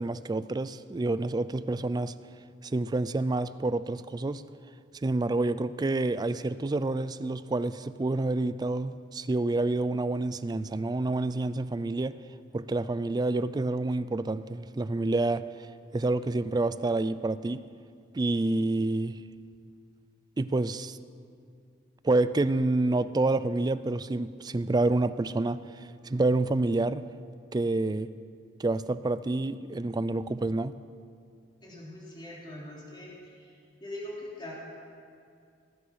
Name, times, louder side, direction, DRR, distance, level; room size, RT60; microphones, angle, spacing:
voice 1, 0.0-2.1 2.7-4.4 5.0-12.2 12.5-15.4 15.9-17.7 18.1-19.2 20.4-21.0 22.0-25.6 26.0-27.0 27.5-28.1 28.6-30.8, right 2 dB, 20° right, 14 dB, 0.4 m, -28 dB
voice 2, 31.6-33.5 33.8-34.5, left 1 dB, 25° left, -5 dB, 3.2 m, -42 dB
18.5 x 10.0 x 5.8 m, 2.3 s
head